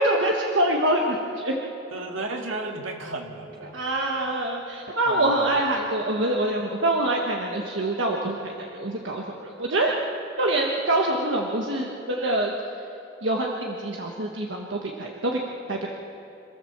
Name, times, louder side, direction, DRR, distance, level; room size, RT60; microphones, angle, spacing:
voice 1, 0.0-1.6 3.7-9.9 10.4-12.5 13.2-15.4 15.7-15.9, right 1 dB, 70° right, 0 dB, 1.5 m, -25 dB
voice 2, 1.9-3.8 5.1-5.4, right 2 dB, 85° right, 2 dB, 2.3 m, -33 dB
27.0 x 14.0 x 7.4 m, 2.9 s
head